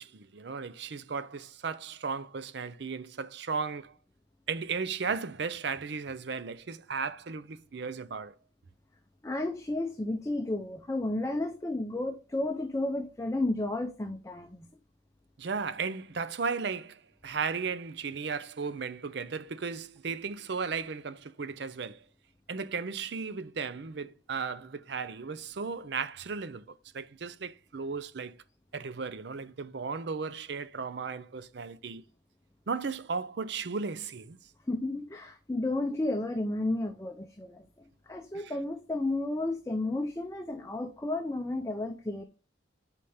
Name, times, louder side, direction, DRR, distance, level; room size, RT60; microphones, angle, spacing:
voice 1, 0.0-4.0 4.5-8.3 15.4-22.0 22.5-28.4 28.7-32.0 32.7-34.4 38.3-38.5, right 5 dB, 60° right, 0.5 m, -35 dB
voice 2, 9.2-14.7 34.7-37.7 38.1-42.2, left 2 dB, 15° left, 0.5 m, -32 dB
5.0 x 4.5 x 5.5 m
head